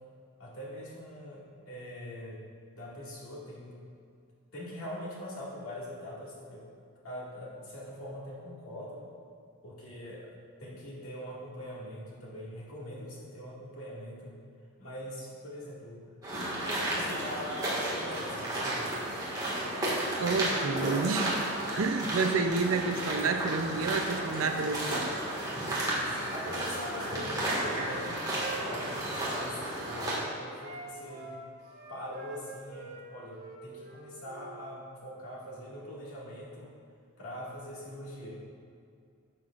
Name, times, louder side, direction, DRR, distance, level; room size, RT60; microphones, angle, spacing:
voice 1, 0.4-2.4 2.7-3.8 4.5-6.7 7.0-9.0 9.6-10.3 10.6-14.4 14.8-18.9 25.8-28.2 28.6-31.4 31.9-36.7 37.2-38.3, equal, 75° left, -5 dB, 2.1 m, -43 dB
sound 1, 16.2-30.2, right 1 dB, 20° right, 1.8 m, -33 dB
voice 2, 20.2-21.4 21.7-25.1, right 4 dB, 70° right, 6 dB, 0.6 m, -29 dB
Wind instrument woodwind instrument, 26.4-30.1 30.6-33.0 33.3-34.6, right 3 dB, 50° right, 1.0 m, -46 dB
11.0 x 7.2 x 2.5 m, 2.3 s
head